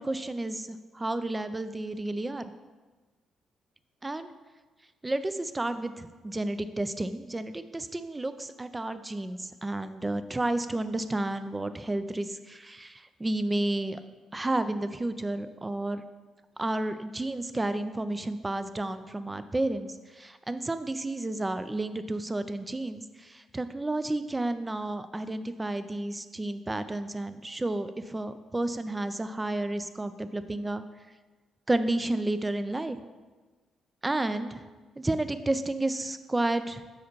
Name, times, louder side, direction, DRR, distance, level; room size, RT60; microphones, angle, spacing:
voice 1, 0.0-2.4 4.0-4.3 5.0-14.0 14.3-16.0 16.6-30.8 31.7-33.0 34.0-34.7 35.0-36.8, right 2 dB, 15° right, 11 dB, 0.4 m, -31 dB
7.0 x 4.9 x 4.6 m, 1.3 s
cardioid pair, 90°, 0 cm